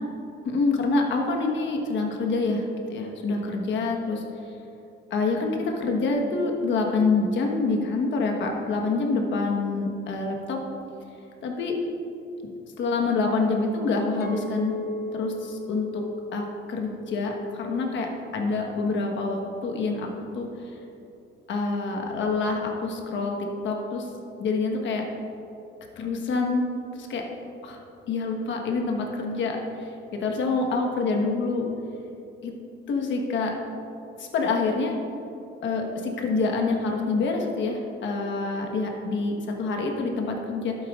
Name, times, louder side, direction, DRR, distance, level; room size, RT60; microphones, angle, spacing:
voice 1, 0.4-4.2 5.1-10.6 11.4-11.8 12.4-12.5 12.8-14.7 15.1-16.0 16.3-20.5 21.5-24.1 24.4-25.0 26.0-26.6 27.0-27.2 27.6-27.8 28.1-31.7 32.4-32.5 32.9-33.5 34.2-34.9 35.6-40.8, left 3 dB, 70° left, 2 dB, 1.3 m, -26 dB
Chink clink, 14.2-18.5 19.0-19.4, left 1 dB, 50° left, 0.9 m, -38 dB
11.5 x 8.5 x 2.4 m, 2.8 s
cardioid pair, 90°, 20 cm